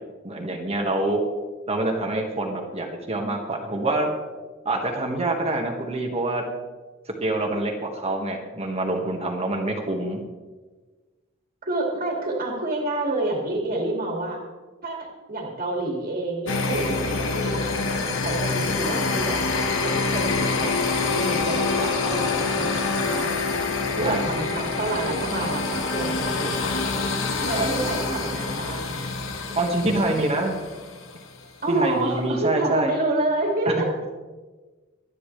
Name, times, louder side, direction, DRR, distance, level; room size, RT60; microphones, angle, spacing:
voice 1, 0.2-1.2 1.7-4.1 4.7-6.4 7.2-10.2 24.0-24.2 27.5-27.7 29.6-30.5 31.7-32.9 33.7-33.8, right 2 dB, 30° right, 1 dB, 1.7 m, -26 dB
voice 2, 11.6-14.4 14.8-19.5 19.8-23.3 24.0-26.7 27.4-29.1 31.6-33.9, right 2 dB, 45° right, -1 dB, 2.5 m, -28 dB
sound 1, 16.5-31.2, left 3 dB, 70° left, 1.5 m, -26 dB
24.0 x 9.7 x 3.3 m, 1.3 s
head